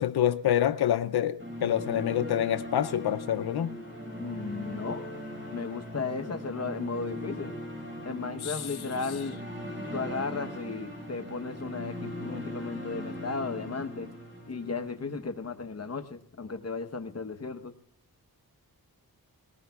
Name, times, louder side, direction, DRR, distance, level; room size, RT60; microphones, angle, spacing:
voice 1, 0.0-3.8 8.4-8.7, left 10 dB, 80° left, 0.5 m, -27 dB
sound 1, 1.4-15.5, equal, 30° right, 5.4 m, -39 dB
voice 2, 4.2-5.1 5.5-7.5 8.0-9.4 9.9-14.1 14.5-17.7, left 4 dB, 40° left, 1.0 m, -35 dB
20.5 x 18.5 x 2.3 m
wide cardioid pair, 80°, 38 cm